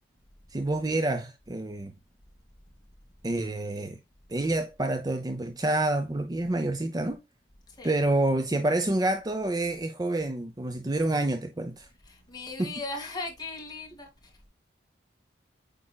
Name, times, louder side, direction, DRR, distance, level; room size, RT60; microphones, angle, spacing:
voice 1, 0.5-1.9 3.2-4.0 4.3-7.2 7.8-11.9 12.6-12.7, right 2 dB, 20° right, 0.6 m, -28 dB
voice 2, 12.0-14.1, left 3 dB, 20° left, 2.2 m, -38 dB
8.6 x 5.3 x 2.3 m
head